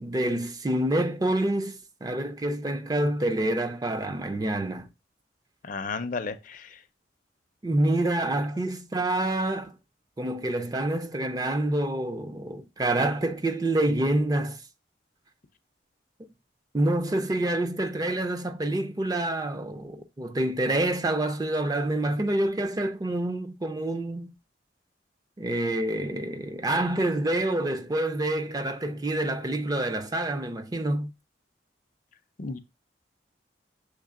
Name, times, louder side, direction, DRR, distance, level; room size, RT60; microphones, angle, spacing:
voice 1, 0.0-4.9 7.6-9.7 10.2-14.6 16.7-24.3 25.4-31.1, right 1 dB, 20° right, 0.4 m, -27 dB
voice 2, 5.6-6.8 32.4-32.6, left 4 dB, 45° left, 0.5 m, -33 dB
6.5 x 3.2 x 2.4 m
head